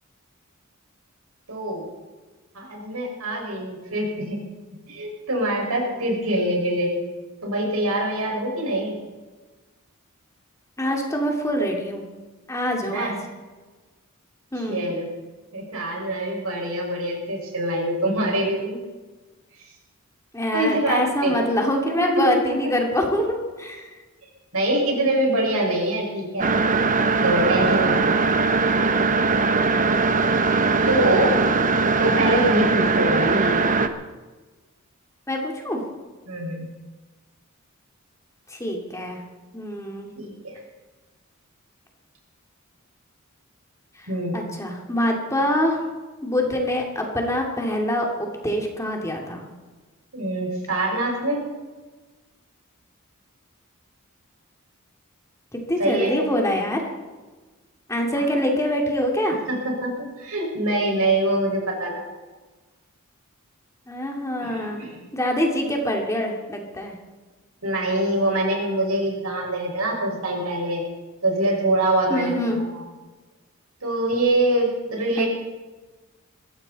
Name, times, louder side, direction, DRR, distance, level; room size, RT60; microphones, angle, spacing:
voice 1, 1.5-1.9 2.5-4.4 4.9-7.0 7.4-9.0 12.9-13.1 14.7-15.1 15.5-18.8 20.5-21.4 21.8-22.4 24.5-26.5 27.2-28.1 30.9-31.4 32.0-33.6 36.3-36.7 40.2-40.5 44.1-44.3 50.1-51.4 55.8-56.1 59.5-62.1 64.4-65.0 67.6-70.8 71.2-72.8 73.8-75.3, right 1 dB, 85° right, 0 dB, 5.6 m, -24 dB
voice 2, 10.8-12.0 12.5-13.2 14.5-14.9 20.3-24.0 32.2-32.6 35.3-35.8 38.5-39.2 39.5-40.1 44.0-44.1 44.3-45.8 46.2-49.4 55.5-56.8 57.9-59.4 63.9-64.8 65.1-66.9 72.1-72.7 75.2-75.3, equal, 15° left, 1 dB, 2.5 m, -25 dB
sound 1, 26.4-33.9, right 4 dB, 35° right, 0.9 m, -20 dB
21.5 x 15.5 x 4.2 m, 1.3 s
head